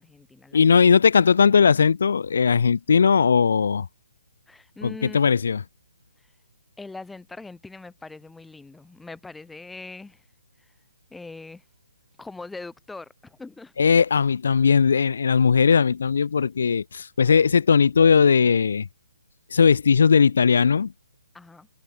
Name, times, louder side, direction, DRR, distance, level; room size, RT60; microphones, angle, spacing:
voice 1, 0.0-0.7 4.5-5.2 6.2-6.3 6.8-10.2 10.6-10.7 11.1-11.6 12.2-13.7 21.3-21.7, left 3 dB, 5° left, 2.3 m, -41 dB
voice 2, 0.5-3.9 4.8-5.6 13.8-18.9 19.5-20.9, left 6 dB, 65° left, 1.6 m, -18 dB
hypercardioid pair, 165°, 0 cm